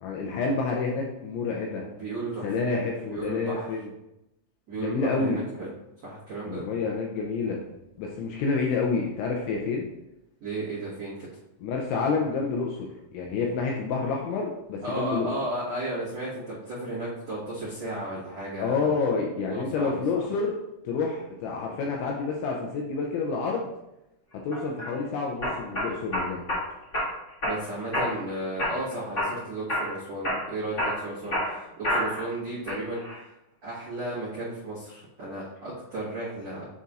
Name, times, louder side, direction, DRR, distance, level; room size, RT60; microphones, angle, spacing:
voice 1, 0.0-1.8 2.4-3.9 4.7-5.4 6.5-7.6 8.0-9.9 11.6-12.8 13.1-15.3 18.6-20.5 20.9-23.7 24.4-26.4, left 4 dB, 80° left, 0 dB, 2.7 m, -28 dB
voice 2, 1.8-2.5 3.1-3.7 4.7-5.7 6.0-6.6 10.4-11.3 14.8-18.9 19.5-20.3 27.4-33.0 33.6-36.7, right 2 dB, 75° right, -8 dB, 1.5 m, -34 dB
sound 1, 24.5-24.9 25.4-26.6 26.9-27.6 27.9-28.3 28.6-29.4 29.7-29.9 30.2-32.3 32.7-33.2, left 1 dB, 50° left, 0.8 m, -28 dB
10.0 x 4.1 x 2.5 m, 0.89 s
omnidirectional pair, 5.9 m